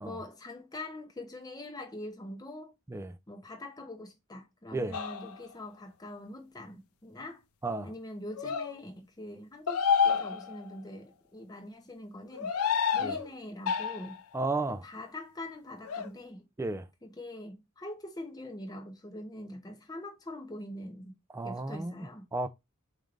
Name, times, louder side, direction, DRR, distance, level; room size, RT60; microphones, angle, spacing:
voice 1, 0.0-2.7 3.3-7.4 7.8-12.5 12.9-14.2 14.8-16.4 17.0-21.1 21.4-22.3, left 1 dB, 15° left, 0.8 m, -43 dB
sound 1, 4.9-5.5 8.4-8.7 9.7-10.8 12.3-13.3 13.7-14.2 15.8-16.1, left 6 dB, 75° left, 0.5 m, -29 dB
voice 2, 14.3-14.8 16.6-16.9 21.3-22.5, right 2 dB, 10° right, 0.3 m, -33 dB
5.2 x 2.4 x 3.2 m
head